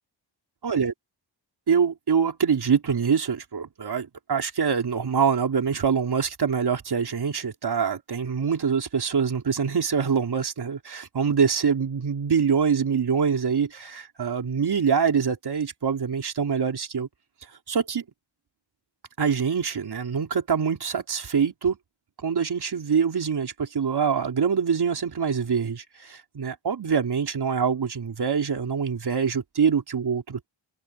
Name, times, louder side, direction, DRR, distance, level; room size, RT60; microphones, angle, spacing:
voice 1, 0.6-0.9 1.7-17.1 17.7-18.0 19.2-21.8 22.2-30.5, right 6 dB, 55° right, 4.2 m, -24 dB
open air
wide cardioid pair, 135°, 46 cm